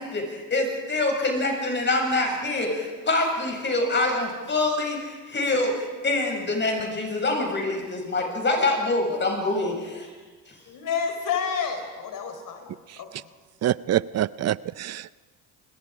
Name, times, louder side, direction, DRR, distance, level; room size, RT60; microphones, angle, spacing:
voice 1, 0.0-10.1 10.5-10.6, left 2 dB, 30° left, 2 dB, 7.3 m, -25 dB
voice 2, 10.7-13.3, left 6 dB, 55° left, 5 dB, 5.0 m, -30 dB
voice 3, 13.6-15.1, right 12 dB, 40° right, 20 dB, 0.6 m, -26 dB
28.5 x 21.0 x 5.1 m, 1.4 s
supercardioid pair, 80°, 38 cm